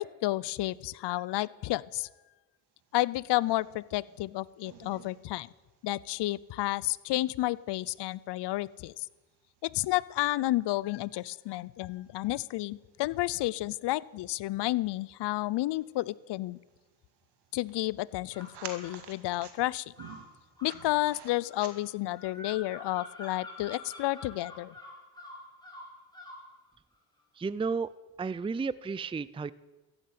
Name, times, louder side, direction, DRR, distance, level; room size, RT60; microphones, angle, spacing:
voice 1, 0.0-2.1 2.9-5.5 5.8-8.9 9.6-16.6 17.5-19.9 20.6-24.7, left 17 dB, 75° left, 22 dB, 0.6 m, -31 dB
sound 1, 2.8-22.2, right 7 dB, 70° right, 2.2 m, -54 dB
sound 2, 18.3-19.0 19.9-26.5, left 2 dB, 10° left, 4.9 m, -47 dB
voice 2, 27.4-27.9 28.2-29.5, right 5 dB, 15° right, 18 dB, 0.4 m, -32 dB
14.5 x 8.7 x 9.3 m, 1.2 s
cardioid pair, 70°, 41 cm